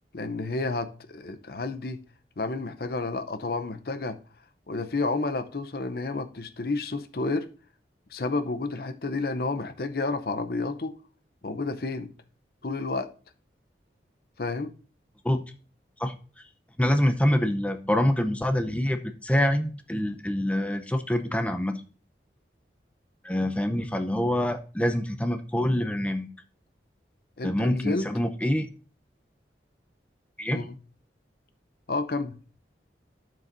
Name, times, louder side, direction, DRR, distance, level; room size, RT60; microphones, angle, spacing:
voice 1, 0.1-2.0 2.4-4.2 4.7-7.5 8.1-10.9 11.4-12.1 12.6-13.1 14.4-14.7 27.4-28.1 30.5-30.8 31.9-32.4, left 3 dB, 55° left, 0.7 m, -30 dB
voice 2, 16.8-21.8 23.2-26.3 27.4-28.7 30.4-30.6, left 1 dB, 5° left, 0.6 m, -25 dB
12.0 x 6.4 x 2.6 m
head